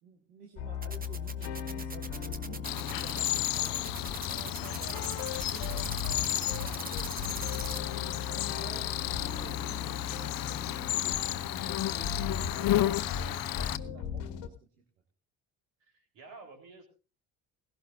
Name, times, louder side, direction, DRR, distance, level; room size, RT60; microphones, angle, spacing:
voice 1, 0.0-7.0 7.7-14.8, right 6 dB, 85° right, 2 dB, 1.7 m, -52 dB
sound 1, 0.5-14.5, left 7 dB, 70° left, 1.6 m, -38 dB
sound 2, 0.8-7.8, right 4 dB, 20° right, 1.1 m, -41 dB
Cricket, 2.6-13.8, left 14 dB, 50° left, 0.7 m, -33 dB
voice 2, 15.8-16.9, right 3 dB, 70° right, 3 dB, 4.0 m, -51 dB
17.5 x 16.5 x 2.6 m, 0.33 s
hypercardioid pair, 60°, 45 cm